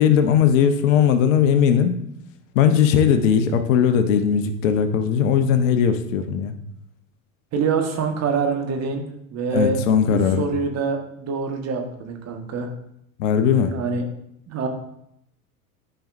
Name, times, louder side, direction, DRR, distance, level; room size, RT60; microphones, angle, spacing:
voice 1, 0.0-2.0 2.5-6.5 9.5-10.5 13.2-13.7, left 8 dB, 60° left, 9 dB, 1.0 m, -18 dB
voice 2, 7.5-9.0 9.3-9.8 10.1-12.7 13.7-14.0 14.5-14.7, right 4 dB, 35° right, 3 dB, 1.5 m, -25 dB
12.5 x 5.3 x 2.6 m, 0.75 s
hypercardioid pair, 90°, 43 cm